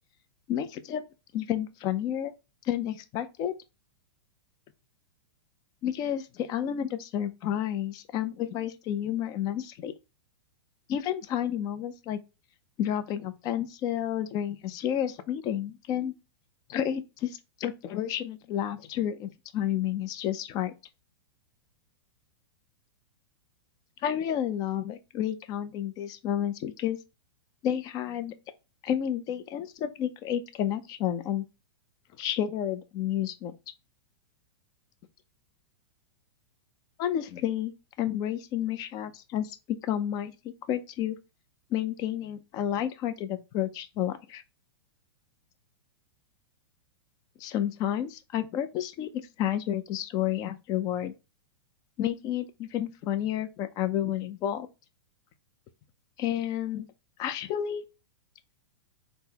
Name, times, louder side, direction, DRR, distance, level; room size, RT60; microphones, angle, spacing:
voice 1, 0.5-1.1 1.3-2.3 2.6-3.5 5.8-9.9 10.9-12.2 12.8-16.1 16.7-20.7 24.0-27.0 27.6-28.3 28.8-31.4 32.2-33.5 37.0-37.7 38.0-39.6 39.8-41.2 41.7-44.4 47.4-49.1 49.4-51.1 52.0-54.7 56.2-56.9 57.2-57.8, left 10 dB, 30° left, 0.3 m, -30 dB
3.6 x 2.0 x 2.7 m
hypercardioid pair, 140°, 14 cm